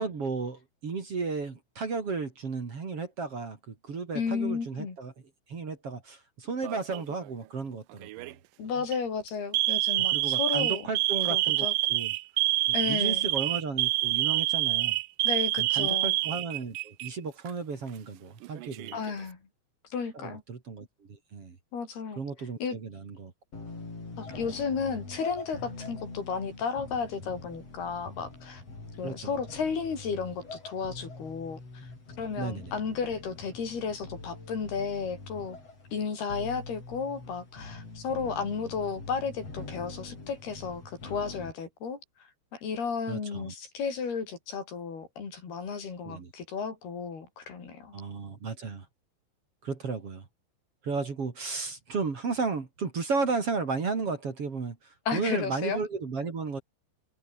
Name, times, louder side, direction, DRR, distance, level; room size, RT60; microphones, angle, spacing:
voice 1, 0.0-5.1 5.5-8.4 10.1-12.1 12.7-15.0 15.6-19.0 20.1-21.6 22.2-23.3 29.0-29.3 32.4-32.7 43.1-43.5 46.0-46.3 47.9-48.9 49.6-50.2 50.8-56.6, right 4 dB, 40° right, 3.6 m, -34 dB
voice 2, 4.2-5.0 8.6-10.8 11.3-11.7 12.7-13.3 15.2-16.2 18.9-19.4 19.9-20.4 21.7-22.2 22.6-22.8 24.2-28.6 29.0-31.9 32.2-35.6 35.9-42.0 42.5-48.0 55.1-55.8, left 5 dB, 75° left, 7.1 m, -33 dB
Alarm, 6.6-7.1 8.0-8.3 8.8-9.0 9.5-17.1 17.4-17.5 18.4-19.1, right 19 dB, 80° right, 2.0 m, -27 dB
sound 1, 23.5-41.5, left 3 dB, 40° left, 8.4 m, -44 dB
omnidirectional pair, 4.6 m